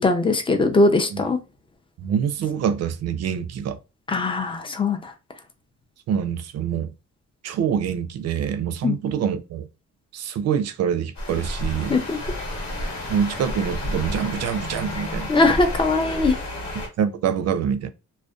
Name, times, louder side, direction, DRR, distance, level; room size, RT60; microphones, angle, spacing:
voice 1, 0.0-1.4 4.1-5.1 8.8-9.0 11.9-12.2 15.3-16.3, left 3 dB, 15° left, 0.4 m, -20 dB
voice 2, 2.0-3.8 6.1-6.9 7.4-9.7 10.1-12.0 13.1-15.3 16.7-17.9, right 8 dB, 55° right, 0.5 m, -25 dB
sound 1, 11.1-16.9, left 1 dB, 70° left, 1.2 m, -31 dB
2.5 x 2.1 x 2.3 m
cardioid pair, 90°, 30 cm